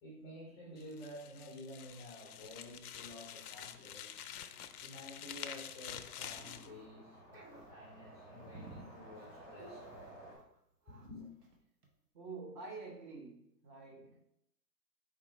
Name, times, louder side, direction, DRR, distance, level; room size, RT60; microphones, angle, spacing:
voice 1, 0.0-4.1 4.7-9.8 10.9-11.3, left 1 dB, 10° left, -5 dB, 0.5 m, -51 dB
sound 1, 0.8-6.7, left 9 dB, 70° left, 0.5 m, -48 dB
sound 2, 4.1-10.4, right 1 dB, 5° right, 0.9 m, -56 dB
sound 3, 6.2-6.9 7.2-10.6 10.8-11.1 11.4-11.6 11.8-11.9, right 3 dB, 80° right, 1.3 m, -55 dB
voice 2, 12.1-14.2, right 4 dB, 30° right, 1 dB, 0.7 m, -48 dB
4.7 x 3.6 x 3.1 m, 0.77 s
hypercardioid pair, 140°, 47 cm